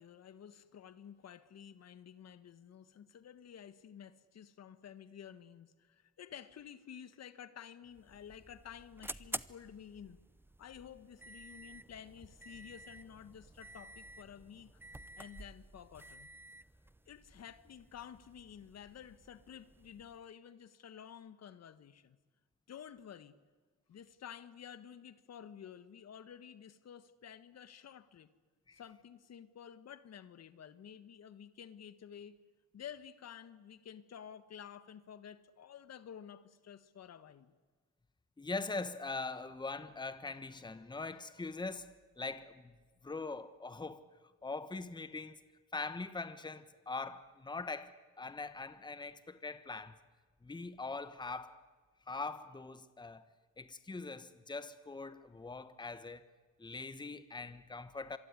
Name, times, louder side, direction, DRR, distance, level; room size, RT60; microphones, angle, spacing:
voice 1, 0.0-10.2 10.6-14.7 15.2-16.3 17.1-22.2 22.7-23.4 23.9-28.3 28.7-32.3 32.7-37.5, left 8 dB, 55° left, 1.5 m, -52 dB
sound 1, 7.8-20.3, right 1 dB, 5° right, 0.7 m, -51 dB
voice 2, 38.4-42.8 43.0-44.1 44.4-45.4 45.7-50.0 50.4-51.6 52.1-53.3 53.6-56.2 56.6-58.2, left 3 dB, 15° left, 1.2 m, -42 dB
26.0 x 23.0 x 9.9 m
cardioid pair, 90°, 30 cm